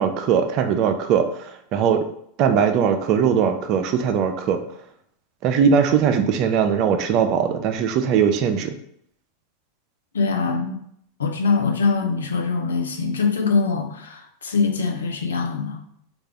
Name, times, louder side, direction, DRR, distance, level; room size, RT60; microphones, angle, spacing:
voice 1, 0.0-2.1 2.4-4.6 5.4-8.7, right 7 dB, 45° right, 8 dB, 0.4 m, -20 dB
voice 2, 10.1-10.8 11.2-15.8, left 4 dB, 80° left, 3 dB, 0.5 m, -23 dB
3.4 x 2.4 x 3.3 m, 0.70 s
hypercardioid pair, 90°, 0 cm